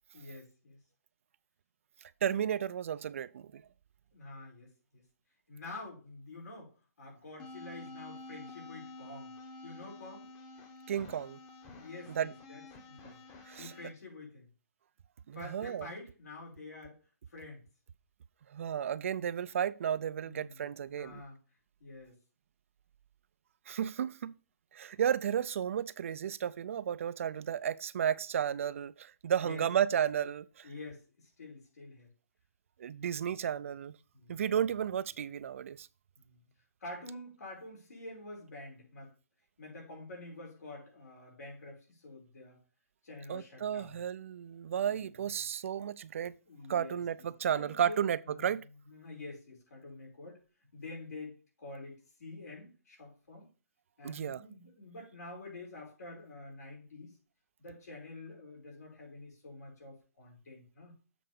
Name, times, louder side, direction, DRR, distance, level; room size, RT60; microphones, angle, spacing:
voice 1, 0.1-0.8 4.1-5.0 5.5-9.3 9.6-10.3 11.8-12.6 12.9-13.2 13.6-14.5 15.3-17.0 17.3-17.6 20.2-21.4 21.8-22.1 29.4-29.7 30.6-32.1 34.1-34.4 36.2-36.4 36.8-39.1 39.6-42.6 43.0-44.0 44.7-45.2 46.5-48.5 48.8-50.4 50.7-53.5 54.0-57.2 57.6-61.0, left 2 dB, 85° left, 4.7 m, -48 dB
voice 2, 2.2-3.6 10.9-11.4 12.1-12.3 13.5-13.7 15.3-15.9 18.5-21.2 23.7-24.3 24.7-30.7 32.8-34.0 34.3-35.9 43.3-46.4 46.7-48.6 54.0-54.4, right 9 dB, 55° right, 0.4 m, -33 dB
sound 1, 7.4-13.9, left 2 dB, 20° left, 0.9 m, -49 dB
7.6 x 3.8 x 5.3 m
hypercardioid pair, 160°, 8 cm